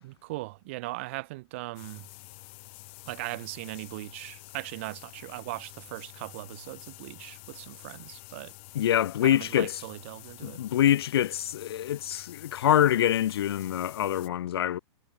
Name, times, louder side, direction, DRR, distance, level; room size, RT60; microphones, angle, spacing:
voice 1, 0.0-2.1 3.1-8.5 9.2-10.6, right 21 dB, 25° right, 0.7 m, -39 dB
sound 1, 1.7-14.3, left 26 dB, 25° left, 1.1 m, -48 dB
voice 2, 8.7-9.8 10.4-14.8, left 11 dB, 60° left, 0.4 m, -25 dB
hypercardioid pair, 180°, 15 cm